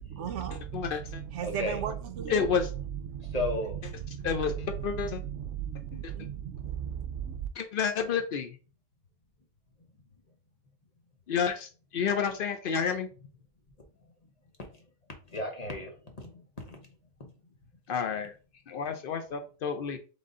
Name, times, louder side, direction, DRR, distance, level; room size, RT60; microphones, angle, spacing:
voice 1, 0.1-3.6 4.0-7.5, right 9 dB, 65° right, 0.8 m, -36 dB
voice 2, 0.7-1.2 2.3-2.7 4.2-5.2 5.9-6.0 7.6-8.6 11.3-13.1 17.9-18.3 18.7-20.0, left 6 dB, 80° left, 0.5 m, -30 dB
voice 3, 1.4-1.8 3.3-3.9 14.6-14.7 15.3-16.3 16.7-16.8 17.2-17.3, left 2 dB, 35° left, 0.8 m, -34 dB
3.8 x 3.5 x 3.7 m
omnidirectional pair, 1.5 m